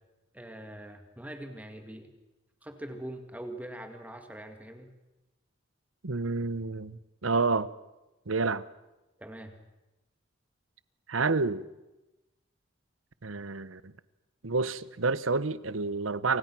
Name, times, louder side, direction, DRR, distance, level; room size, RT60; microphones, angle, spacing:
voice 1, 0.3-2.1 2.6-4.9 9.2-9.5, right 1 dB, 10° right, 5 dB, 2.0 m, -43 dB
voice 2, 6.0-7.7 8.3-8.6 11.1-11.6 13.2-13.9 14.4-16.4, right 4 dB, 85° right, 16 dB, 1.1 m, -29 dB
28.5 x 25.0 x 6.2 m, 1.0 s
head